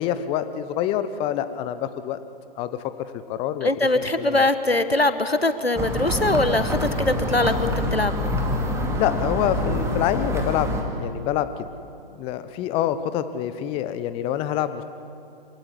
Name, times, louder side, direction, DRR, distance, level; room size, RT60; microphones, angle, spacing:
voice 1, 0.0-2.2 2.6-3.7 3.9-4.5 8.9-11.7 12.2-14.8, left 10 dB, 20° left, 12 dB, 0.9 m, -26 dB
voice 2, 3.6-8.1, left 2 dB, 90° left, 11 dB, 1.4 m, -22 dB
sound 1, 5.7-10.8, left 1 dB, 10° right, 2.3 m, -26 dB
26.0 x 17.0 x 9.9 m, 2.7 s
figure-of-eight pair, 120°, 30 cm